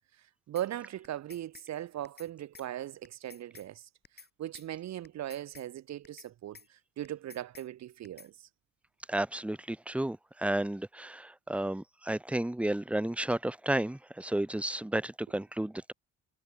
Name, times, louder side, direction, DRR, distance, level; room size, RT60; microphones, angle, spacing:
voice 1, 0.5-3.8 4.4-6.6 7.0-8.3, right 12 dB, 60° right, 0.8 m, -38 dB
sound 1, 0.6-0.7 1.0-1.7 2.0-2.3 2.5-2.7 3.0-3.7 4.0-4.3 4.5-4.7 5.0-5.7 6.0-6.3 6.5-6.7 7.0-7.7 8.0-8.3, left 5 dB, 35° left, 4.9 m, -52 dB
voice 2, 9.1-15.9, right 1 dB, 5° right, 1.2 m, -32 dB
cardioid pair, 90°, 30 cm